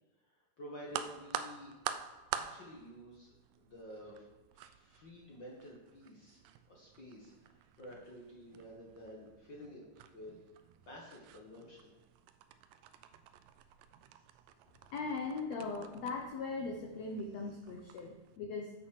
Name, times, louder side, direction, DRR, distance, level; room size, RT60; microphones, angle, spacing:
voice 1, 0.2-1.7 2.3-4.3 4.5-6.4 6.7-9.8 10.1-11.9, equal, 45° left, -3 dB, 1.5 m, -51 dB
sound 1, 0.9-18.4, right 10 dB, 80° right, 2.0 m, -48 dB
voice 2, 14.9-18.7, left 4 dB, 75° left, 2 dB, 1.6 m, -39 dB
9.3 x 8.4 x 6.5 m, 1.2 s
omnidirectional pair, 4.4 m